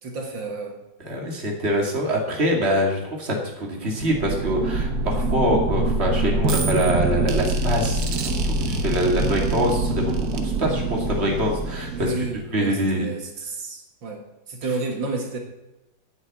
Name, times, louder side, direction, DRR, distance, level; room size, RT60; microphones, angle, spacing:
voice 1, 0.0-0.8 11.9-15.4, right 3 dB, 80° right, 2 dB, 2.3 m, -31 dB
voice 2, 1.0-12.1 12.5-13.1, equal, 35° right, 0 dB, 2.6 m, -24 dB
sound 1, 4.0-12.5, right 2 dB, 55° right, 1.5 m, -25 dB
9.4 x 8.1 x 8.5 m, 0.99 s
omnidirectional pair, 2.0 m